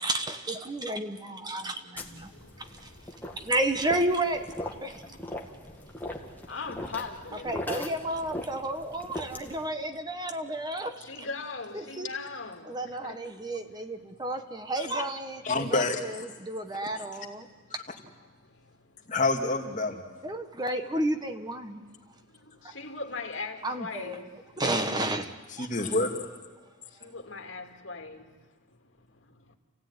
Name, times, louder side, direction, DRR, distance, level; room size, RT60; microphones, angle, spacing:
voice 1, 0.0-2.3 2.6-2.9 3.4-5.0 7.4-11.0 11.7-12.1 12.7-17.5 20.2-21.8 22.6-22.7 23.6-24.2 24.6-25.3 25.6-25.7, right 1 dB, 20° right, 1.4 m, -32 dB
voice 2, 0.6-3.5 4.9-8.0 8.5-14.3 16.4-17.0 17.4-17.7 18.2-19.2 20.4-20.5 21.6-24.6 26.8-29.6, left 4 dB, 75° left, 2.6 m, -44 dB
sound 1, 2.0-9.7, left 1 dB, 10° left, 2.0 m, -40 dB
voice 3, 15.4-16.2 19.1-20.0 25.6-26.1, left 2 dB, 40° left, 2.4 m, -27 dB
29.0 x 16.0 x 9.8 m
head